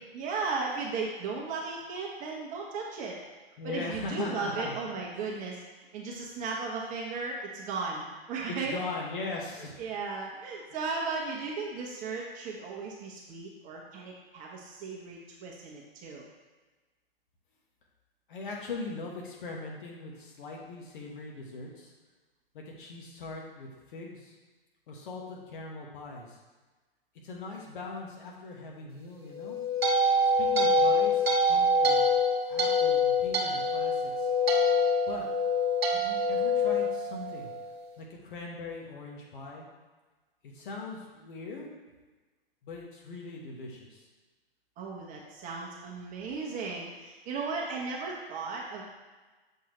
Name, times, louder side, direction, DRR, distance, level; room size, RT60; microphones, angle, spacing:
voice 1, 0.1-3.2 3.6-5.6 5.9-8.7 9.8-16.2 44.8-48.8, right 4 dB, 25° right, -2 dB, 1.0 m, -36 dB
voice 2, 3.6-4.7 8.5-9.8 18.3-21.9 22.5-24.3 24.9-26.4 27.2-29.6 30.4-32.1 32.5-34.3 35.1-35.3 35.9-37.5 38.0-39.6 40.4-41.7 42.6-44.0, left 3 dB, 55° left, -1 dB, 1.5 m, -40 dB
sound 1, 29.3-37.6, left 2 dB, 75° right, 1.3 m, -25 dB
7.1 x 4.6 x 3.2 m, 1.3 s
figure-of-eight pair, 115°, 30 cm